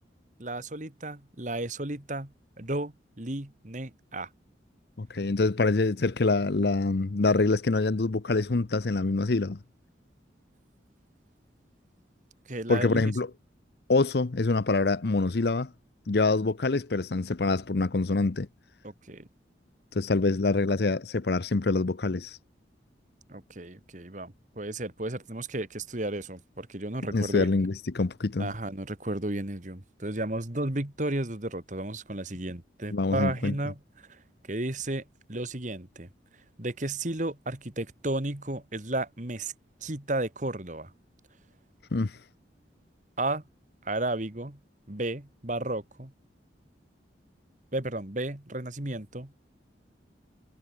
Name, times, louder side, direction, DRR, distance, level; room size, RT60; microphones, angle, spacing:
voice 1, 0.4-4.3 12.5-13.1 18.8-19.3 23.3-27.5 28.4-33.8 34.1-34.2 34.5-35.0 35.3-36.1 36.6-39.5 39.8-40.9 43.2-43.4 43.8-44.6 44.9-46.1 47.7-49.4, right 2 dB, 40° right, 1.9 m, -33 dB
voice 2, 5.0-9.6 12.7-13.3 13.9-15.7 16.1-18.5 19.9-22.4 27.1-28.5 32.9-33.5 41.9-42.2, left 3 dB, 60° left, 0.7 m, -25 dB
head